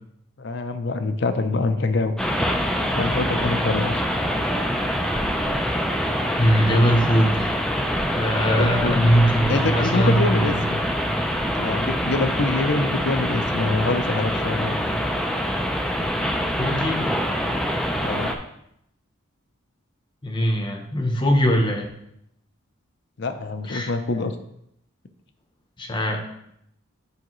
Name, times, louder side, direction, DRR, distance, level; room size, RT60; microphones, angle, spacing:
voice 1, 0.4-2.1 2.8-4.0 8.6-9.1 9.5-10.9 11.6-14.8 18.0-18.4 23.2-24.3, left 3 dB, 55° left, 9 dB, 0.6 m, -25 dB
sound 1, 2.2-18.4, equal, 5° left, 0.4 m, -25 dB
voice 2, 6.4-7.5 8.1-10.6 16.6-17.1 20.2-21.9 23.7-23.9 25.8-26.2, equal, 20° left, 3 dB, 0.8 m, -21 dB
9.7 x 4.8 x 3.1 m, 0.76 s
head